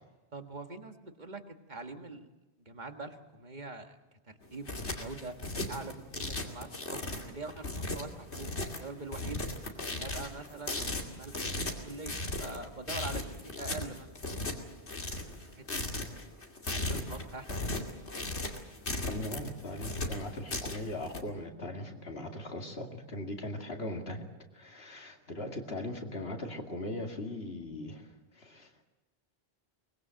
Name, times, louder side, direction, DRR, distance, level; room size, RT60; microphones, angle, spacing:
voice 1, 0.3-1.4 1.7-2.3 2.6-4.0 4.3-5.4 5.7-8.5 8.8-14.4 15.2-16.1 16.6-17.5, right 3 dB, 45° right, 6 dB, 1.9 m, -44 dB
sound 1, 4.4-21.2, left 2 dB, 85° left, 2.8 m, -37 dB
voice 2, 19.1-24.2 24.5-28.8, left 1 dB, 65° left, 3 dB, 2.6 m, -39 dB
23.5 x 20.5 x 7.7 m, 1.0 s
omnidirectional pair, 1.1 m